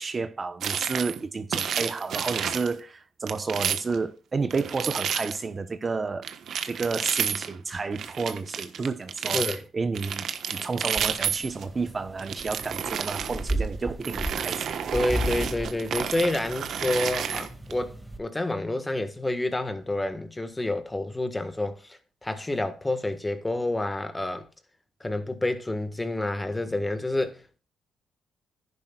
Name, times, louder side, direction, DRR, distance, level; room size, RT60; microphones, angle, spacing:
voice 1, 0.0-6.3 6.7-9.5 9.7-14.8, right 4 dB, 30° right, 1.0 m, -31 dB
sound 1, 0.6-1.2 1.5-2.7 3.3-4.0 4.5-5.4 6.2-7.5 7.9-9.6 9.9-11.6 12.2-13.5 14.0-17.7, right 8 dB, 65° right, 1.2 m, -31 dB
voice 2, 9.3-9.6 14.9-24.5 25.0-27.6, left 2 dB, 15° left, 1.6 m, -29 dB
sound 2, 11.0-18.2, right 1 dB, 5° right, 2.1 m, -35 dB
10.5 x 10.5 x 2.4 m
cardioid pair, 90°, 0 cm